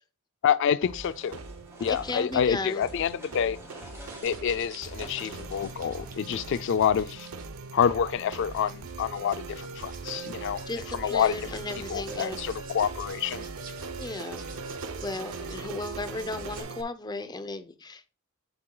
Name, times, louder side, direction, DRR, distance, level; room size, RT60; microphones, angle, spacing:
voice 1, 0.4-1.4 1.8-3.6 4.2-7.3 7.7-10.6 10.9-11.4 11.9-13.4, left 8 dB, 60° left, 0.3 m, -27 dB
sound 1, 0.8-16.8, right 4 dB, 90° right, 0.7 m, -40 dB
sound 2, 1.0-6.4, equal, 10° right, 2.5 m, -49 dB
voice 2, 1.8-2.9 10.7-12.4 14.0-14.4 15.0-18.2, left 3 dB, 20° left, 0.6 m, -35 dB
sound 3, 3.9-16.6, right 4 dB, 40° right, 1.4 m, -49 dB
7.8 x 6.9 x 2.3 m
head